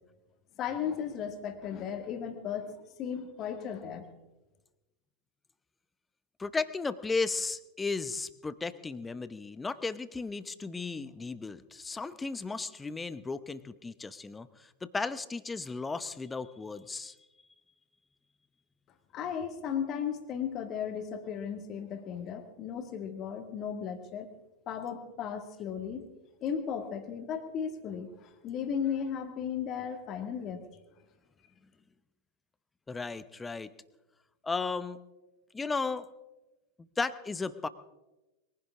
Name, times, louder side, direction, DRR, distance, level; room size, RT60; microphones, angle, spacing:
voice 1, 0.6-4.1 19.1-24.3 24.7-26.1 26.4-30.6, left 7 dB, 35° left, 7 dB, 1.9 m, -35 dB
voice 2, 6.4-17.1 32.9-33.7 34.4-35.0 35.5-36.1 36.8-37.7, left 4 dB, 10° left, 15 dB, 0.8 m, -35 dB
22.0 x 16.0 x 3.7 m, 1.1 s
figure-of-eight pair, 90°, 0 cm